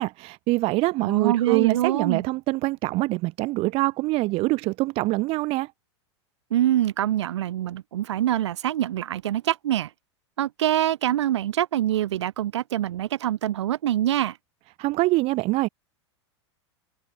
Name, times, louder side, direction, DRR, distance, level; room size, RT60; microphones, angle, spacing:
voice 1, 0.0-5.7 14.8-15.7, right 21 dB, 40° right, 0.6 m, -24 dB
voice 2, 1.0-2.3 6.5-9.9 10.4-14.4, right 12 dB, 70° right, 2.5 m, -25 dB
hypercardioid pair, 95°, 15 cm